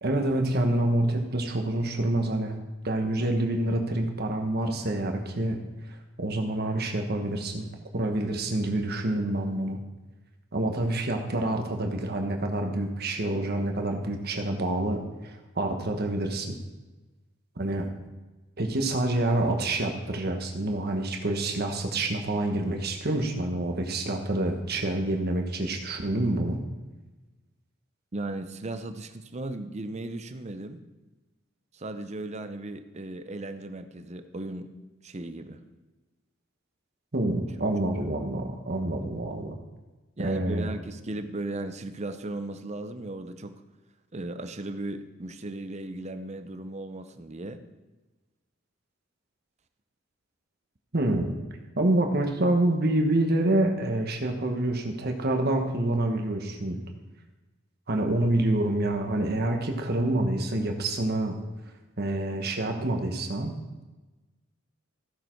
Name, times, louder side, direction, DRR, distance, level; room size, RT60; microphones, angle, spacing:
voice 1, 0.0-2.6 2.8-5.6 5.9-7.7 7.9-9.8 10.5-16.6 17.6-17.9 18.6-26.6 37.1-39.6 40.2-40.7 50.9-51.4 51.8-56.8 57.9-61.4 62.0-63.5, right 1 dB, 50° right, 3 dB, 1.3 m, -27 dB
voice 2, 28.1-30.8 31.7-34.7 35.0-35.6 40.2-43.5 44.1-47.6, right 2 dB, 35° right, 9 dB, 0.7 m, -36 dB
15.0 x 6.8 x 4.6 m, 1.2 s
head